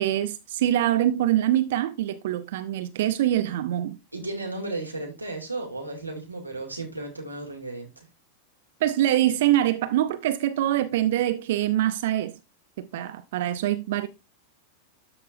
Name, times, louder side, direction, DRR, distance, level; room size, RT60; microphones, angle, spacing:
voice 1, 0.0-4.0 8.8-12.3 12.8-14.1, right 13 dB, 55° right, 0.8 m, -24 dB
voice 2, 4.1-8.0, right 2 dB, 85° right, 2.8 m, -34 dB
13.0 x 5.8 x 2.7 m
figure-of-eight pair, 90°, 0 cm